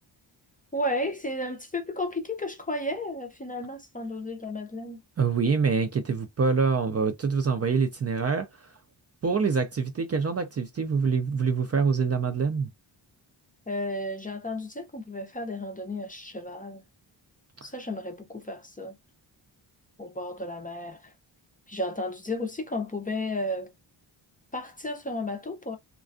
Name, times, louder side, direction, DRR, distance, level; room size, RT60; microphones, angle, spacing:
voice 1, 0.7-5.0 13.7-16.8 17.6-19.0 20.0-21.1 21.7-23.7 24.5-25.8, left 1 dB, 20° left, 0.5 m, -33 dB
voice 2, 5.2-8.7 9.2-12.7 17.6-17.7, right 5 dB, 35° right, 0.4 m, -25 dB
2.4 x 2.2 x 2.4 m
cardioid pair, 90°, 46 cm